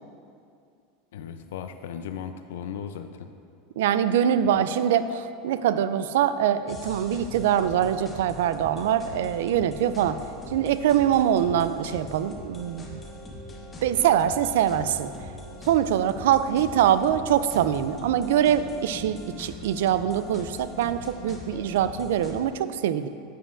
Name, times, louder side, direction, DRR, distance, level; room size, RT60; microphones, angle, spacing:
voice 1, 1.1-3.3, left 8 dB, 90° left, 8 dB, 0.4 m, -36 dB
voice 2, 3.8-10.2 10.5-13.0 13.8-15.1 15.6-23.1, right 10 dB, 75° right, 13 dB, 0.3 m, -23 dB
sound 1, 6.7-22.4, left 1 dB, 15° left, 0.7 m, -41 dB
9.8 x 7.5 x 2.5 m, 2.4 s
supercardioid pair, 175°, 0 cm